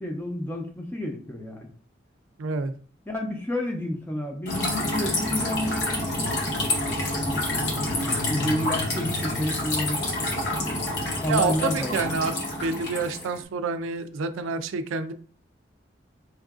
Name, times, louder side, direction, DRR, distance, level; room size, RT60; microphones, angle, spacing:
voice 1, 0.0-1.7 3.1-6.1 7.1-7.4 8.2-10.1 11.2-12.0, left 1 dB, 10° left, 1 dB, 0.5 m, -30 dB
voice 2, 2.4-2.7 11.3-12.3 12.6-15.1, right 4 dB, 90° right, 9 dB, 0.4 m, -28 dB
sound 1, 4.5-13.4, left 1 dB, 55° left, 0.9 m, -28 dB
4.5 x 2.4 x 2.4 m, 0.43 s
head